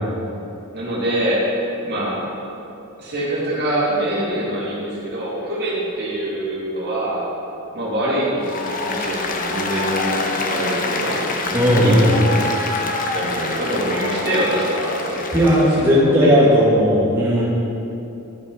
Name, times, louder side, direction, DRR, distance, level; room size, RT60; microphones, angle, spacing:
voice 1, 0.7-1.4 1.8-2.2 3.0-7.2 7.7-11.2 11.5-12.6 13.1-16.6, right 1 dB, 50° right, -6 dB, 2.2 m, -24 dB
Applause, 8.4-15.9, left 3 dB, 40° left, 0.8 m, -26 dB
voice 2, 11.5-12.1 15.3-17.4, equal, 10° right, -8 dB, 1.7 m, -15 dB
12.0 x 5.5 x 5.0 m, 2.9 s
head